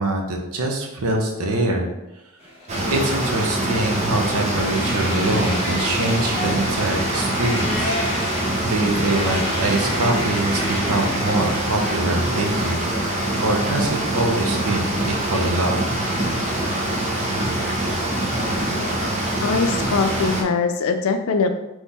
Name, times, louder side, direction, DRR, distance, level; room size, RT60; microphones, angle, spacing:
voice 1, 0.0-1.9 2.9-7.9 8.2-15.8, right 2 dB, 80° right, 2 dB, 0.8 m, -24 dB
sound 1, 2.4-11.6, left 1 dB, 30° left, 1.2 m, -32 dB
sound 2, 2.7-20.4, right 1 dB, 30° right, 0.6 m, -24 dB
voice 2, 18.4-19.1 19.4-21.5, left 4 dB, 70° left, 6 dB, 0.4 m, -23 dB
3.6 x 3.1 x 4.1 m, 0.96 s
head